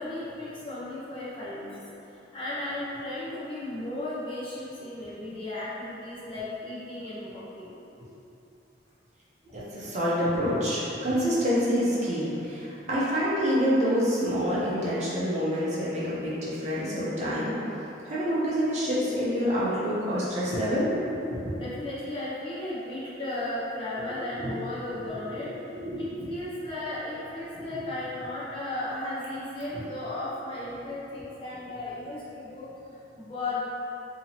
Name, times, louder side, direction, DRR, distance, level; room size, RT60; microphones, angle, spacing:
voice 1, 0.0-1.8 2.3-7.7 21.6-25.5 26.0-33.6, left 1 dB, 30° left, -9 dB, 0.6 m, -35 dB
voice 2, 9.4-17.6 18.0-21.6 24.3-24.5 24.9-25.4 25.7-26.3, equal, 40° right, -8 dB, 0.7 m, -27 dB
2.8 x 2.7 x 4.2 m, 2.9 s
head